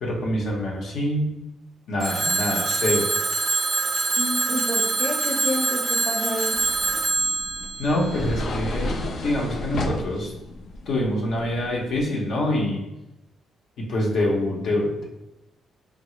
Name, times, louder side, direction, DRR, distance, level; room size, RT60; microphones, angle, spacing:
voice 1, 0.0-1.3 1.9-3.1 7.8-10.3 10.9-12.8 13.8-15.0, left 1 dB, 70° left, -2 dB, 0.8 m, -25 dB
Telephone, 2.0-8.8, right 3 dB, 35° right, 0.5 m, -25 dB
voice 2, 4.2-6.6, left 1 dB, 20° left, -2 dB, 0.7 m, -29 dB
sound 1, 6.5-12.0, left 1 dB, 55° left, 0.4 m, -32 dB
3.7 x 2.0 x 3.1 m, 0.93 s
cardioid pair, 90°, 0 cm